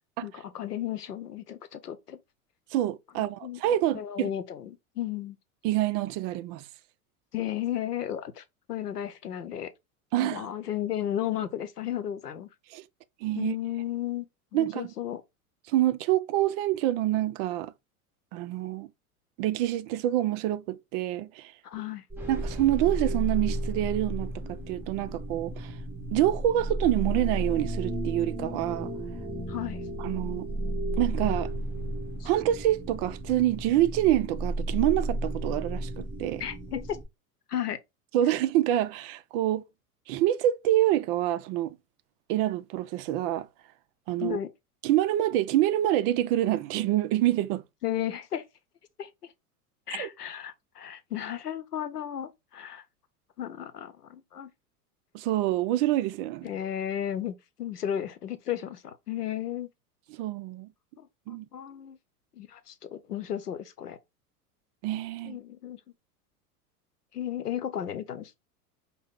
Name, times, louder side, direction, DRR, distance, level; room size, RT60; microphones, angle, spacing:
voice 1, 0.2-2.2 3.2-3.6 3.9-5.4 7.3-9.7 10.2-12.5 13.3-14.3 14.5-15.2 21.6-22.0 29.5-29.9 32.2-32.3 36.4-37.0 37.5-37.8 44.2-44.5 47.8-48.4 49.0-49.3 49.9-52.8 53.4-54.5 56.4-59.7 61.0-62.0 62.3-64.0 65.2-65.8 67.1-68.4, left 11 dB, 90° left, 0.7 m, -34 dB
voice 2, 2.7-4.3 5.6-6.6 10.1-10.5 12.7-12.8 13.2-13.5 14.5-14.9 15.7-17.7 18.3-18.9 19.4-21.5 22.3-25.7 26.1-28.9 30.0-30.5 31.0-31.5 32.2-36.4 38.1-39.6 40.1-41.8 42.3-43.5 44.1-44.4 44.8-47.6 49.9-50.1 55.1-56.5 60.1-60.7 61.3-61.5 64.8-65.4, right 13 dB, 40° right, 0.4 m, -26 dB
sound 1, 22.1-37.0, right 1 dB, 5° right, 1.2 m, -33 dB
5.4 x 2.1 x 3.5 m
hypercardioid pair, 90°, 45 cm